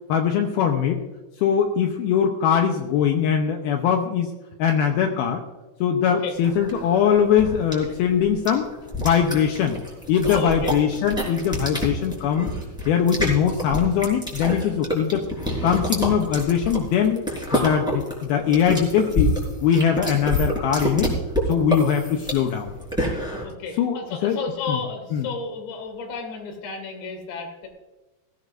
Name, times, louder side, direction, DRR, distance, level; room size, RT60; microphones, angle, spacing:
voice 1, 0.1-1.0 1.4-4.3 4.6-5.4 5.8-8.7 9.0-9.8 10.1-12.5 12.9-15.2 15.6-17.2 17.5-19.3 19.6-21.1 21.5-22.7 23.8-24.4 24.7-24.8 25.1-25.3, left 8 dB, 85° left, 3 dB, 2.2 m, -21 dB
voice 2, 6.0-6.3 10.3-10.7 12.1-12.2 23.4-27.7, left 4 dB, 65° left, 3 dB, 4.5 m, -32 dB
sound 1, 6.4-23.4, equal, ahead, 3.6 m, -28 dB
18.0 x 15.5 x 2.6 m, 1.1 s
omnidirectional pair, 5.6 m